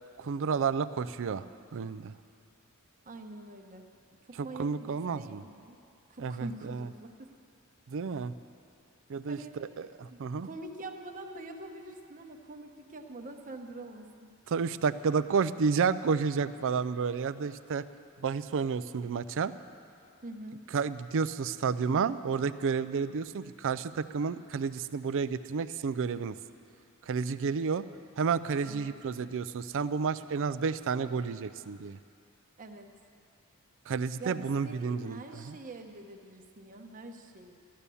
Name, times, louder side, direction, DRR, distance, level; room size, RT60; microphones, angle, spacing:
voice 1, 0.2-1.4 1.7-2.1 4.6-5.4 6.2-6.9 7.9-8.3 9.1-10.5 14.5-17.8 18.2-19.5 20.7-26.4 27.1-27.8 28.2-32.0 33.9-35.6, right 5 dB, 60° right, 14 dB, 0.4 m, -31 dB
voice 2, 3.0-3.9 4.2-5.8 6.1-7.3 9.3-9.6 10.1-14.4 20.2-20.6 28.6-28.9 32.6-32.9 34.2-37.5, right 2 dB, 35° right, 4 dB, 1.0 m, -45 dB
14.0 x 11.5 x 7.0 m, 2.5 s
head